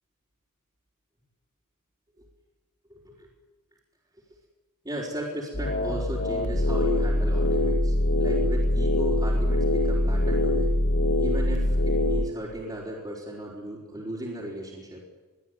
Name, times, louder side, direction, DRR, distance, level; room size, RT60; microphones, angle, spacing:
voice 1, 2.9-3.3 4.8-10.7 11.2-15.0, right 1 dB, 20° right, -6 dB, 4.7 m, -36 dB
sound 1, 5.5-12.2, left 1 dB, 55° left, 1.7 m, -23 dB
23.0 x 15.0 x 9.7 m, 1.3 s
head